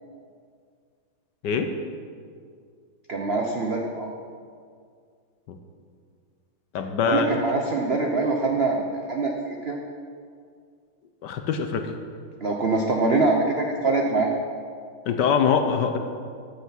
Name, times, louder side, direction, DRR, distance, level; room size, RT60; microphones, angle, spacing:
voice 1, 3.1-4.1 7.0-9.8 12.4-14.3, right 3 dB, 65° right, 1 dB, 0.6 m, -24 dB
voice 2, 6.7-7.3 11.2-11.9 15.1-16.0, left 6 dB, 65° left, 6 dB, 1.2 m, -23 dB
15.0 x 5.9 x 5.8 m, 2.2 s
omnidirectional pair, 2.2 m